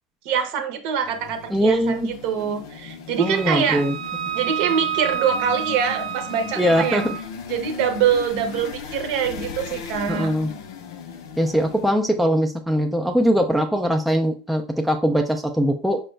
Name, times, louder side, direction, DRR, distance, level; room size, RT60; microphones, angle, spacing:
voice 1, 0.2-3.9 4.3-7.0 7.5-10.3, right 8 dB, 55° right, 7 dB, 0.7 m, -24 dB
sound 1, 1.0-11.9, left 7 dB, 80° left, 0.6 m, -37 dB
voice 2, 1.5-2.1 3.2-4.0 6.6-7.1 10.1-10.5 11.4-16.0, equal, ahead, 2 dB, 0.4 m, -21 dB
Wind instrument woodwind instrument, 3.2-7.2, right 10 dB, 80° right, 0.4 m, -29 dB
5.0 x 2.3 x 3.2 m, 0.37 s
supercardioid pair, 140°, 2 cm